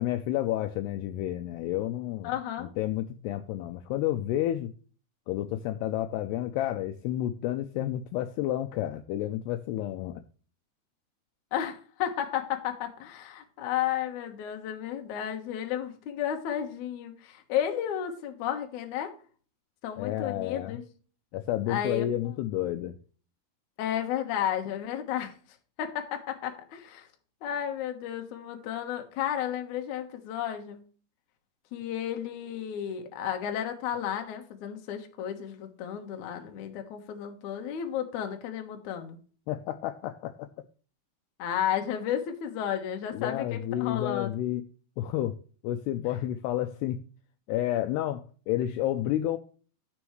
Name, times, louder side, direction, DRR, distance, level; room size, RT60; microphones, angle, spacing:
voice 1, 0.0-2.3 2.6-4.7 5.3-10.2 20.0-20.8 21.3-22.9 39.5-40.5 43.1-44.6 45.0-45.4 45.6-47.0 47.5-49.4, left 13 dB, 85° left, 2.4 m, -30 dB
voice 2, 2.2-2.7 11.5-19.1 19.8-20.8 21.7-22.1 23.8-25.3 25.8-27.1 27.4-30.8 31.7-39.2 41.4-44.3, left 9 dB, 65° left, 2.0 m, -33 dB
13.5 x 6.2 x 3.2 m
omnidirectional pair, 5.2 m